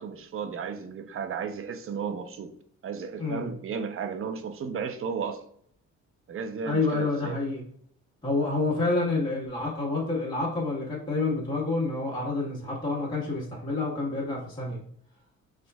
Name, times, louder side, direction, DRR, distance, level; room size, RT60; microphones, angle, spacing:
voice 1, 0.0-2.5 2.8-5.5 6.3-7.4, right 6 dB, 45° right, 0.6 m, -34 dB
voice 2, 3.2-3.5 6.6-7.6 8.2-14.8, left 3 dB, 15° left, 1.5 m, -28 dB
4.3 x 3.8 x 2.3 m
cardioid pair, 90°, 30 cm